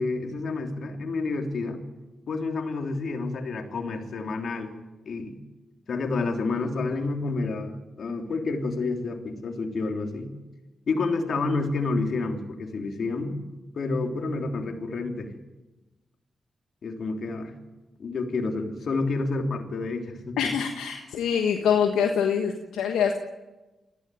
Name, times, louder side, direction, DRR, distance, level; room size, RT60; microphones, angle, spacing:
voice 1, 0.0-1.8 2.3-5.3 5.9-10.3 10.9-13.4 13.7-15.3 16.8-17.5 18.0-20.5, left 3 dB, 65° left, 3 dB, 3.2 m, -29 dB
voice 2, 20.4-23.2, left 7 dB, 85° left, 3 dB, 1.3 m, -24 dB
20.0 x 16.0 x 9.2 m, 1.1 s
supercardioid pair, 45°, 0 cm